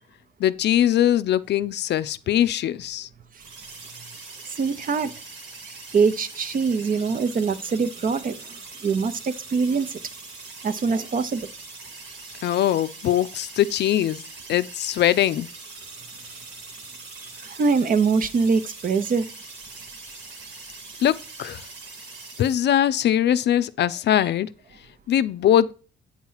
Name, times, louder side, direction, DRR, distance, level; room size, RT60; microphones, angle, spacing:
voice 1, 0.4-3.1 12.4-14.2 14.5-15.5 21.0-21.6 22.4-24.5 25.1-25.7, left 11 dB, 60° left, 0.4 m, -21 dB
sound 1, 3.4-22.6, right 3 dB, 75° right, 1.7 m, -42 dB
voice 2, 4.6-5.1 5.9-8.4 8.8-9.9 10.6-11.4 17.4-19.2, right 5 dB, 45° right, 0.7 m, -23 dB
8.6 x 3.0 x 5.5 m
cardioid pair, 90°, 20 cm